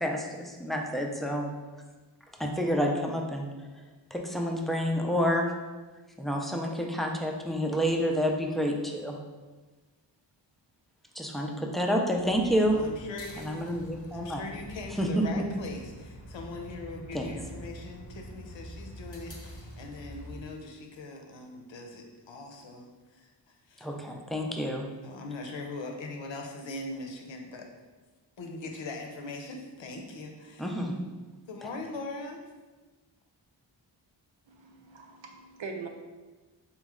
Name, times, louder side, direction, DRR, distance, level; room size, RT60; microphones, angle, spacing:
voice 1, 0.0-1.5 2.4-3.5 4.1-5.5 6.2-9.2 11.2-12.7 13.4-14.4 15.0-15.5 17.1-17.3 23.8-24.9 30.6-30.9, equal, ahead, 1 dB, 0.3 m, -29 dB
sound 1, 12.2-20.4, equal, 30° left, 0.6 m, -46 dB
voice 2, 12.4-13.6 14.1-24.0 25.0-27.7 28.4-30.8 31.5-32.4, left 2 dB, 80° left, 3 dB, 0.7 m, -41 dB
voice 3, 34.5-35.9, right 4 dB, 85° right, 3 dB, 0.7 m, -42 dB
4.0 x 3.1 x 3.6 m, 1.3 s
wide cardioid pair, 145°, 44 cm